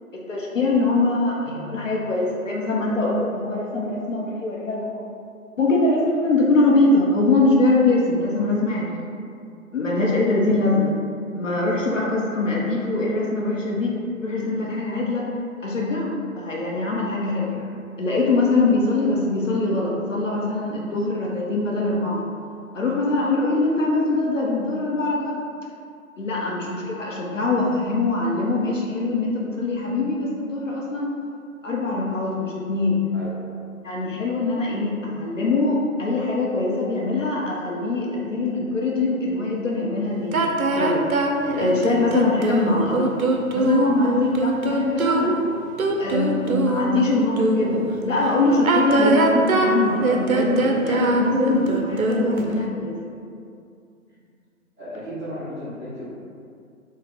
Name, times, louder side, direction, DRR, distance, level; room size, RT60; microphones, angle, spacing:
voice 1, 0.1-5.1 5.6-9.0 9.7-10.9 11.4-15.3 15.6-17.5 18.0-22.2 22.7-25.4 26.2-31.1 31.6-33.1 33.8-41.1 41.6-43.1 43.5-45.4 46.0-53.0, left 2 dB, 60° left, -3 dB, 0.6 m, -23 dB
sound 1, 40.3-47.8 48.5-52.6, right 2 dB, 75° right, 0.6 m, -22 dB
voice 2, 54.8-56.0, equal, 5° right, -18 dB, 1.3 m, -36 dB
3.8 x 2.1 x 3.7 m, 2.4 s
figure-of-eight pair, 140°, 43 cm